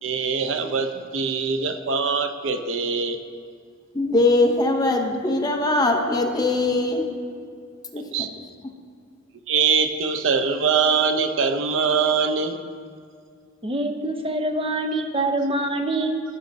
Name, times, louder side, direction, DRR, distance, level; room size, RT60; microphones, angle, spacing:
voice 1, 0.0-3.2 8.0-8.3 9.5-12.6, right 5 dB, 80° right, 8 dB, 0.6 m, -23 dB
voice 2, 3.9-7.1 7.9-8.3, left 2 dB, 20° left, 3 dB, 0.7 m, -21 dB
voice 3, 13.6-16.2, right 2 dB, 30° right, 5 dB, 0.6 m, -25 dB
15.5 x 6.4 x 2.7 m, 2.2 s
head